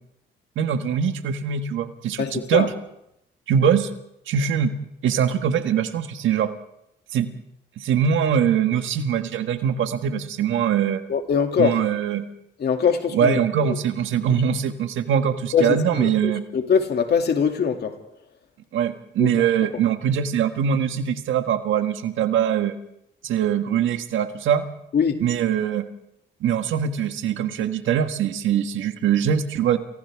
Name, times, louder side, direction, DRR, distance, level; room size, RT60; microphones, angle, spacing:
voice 1, 0.5-2.7 3.5-3.9 4.3-4.7 5.0-6.5 7.1-7.3 7.8-11.0 11.6-12.3 13.1-16.4 18.7-22.7 23.2-24.6 25.2-25.9 26.4-29.8, right 8 dB, 75° right, 1.6 m, -22 dB
voice 2, 2.2-2.7 11.1-11.8 12.6-13.7 15.5-18.0 19.2-19.3 24.9-25.2, left 6 dB, 55° left, 2.6 m, -22 dB
29.5 x 28.0 x 3.6 m
cardioid pair, 90°, 20 cm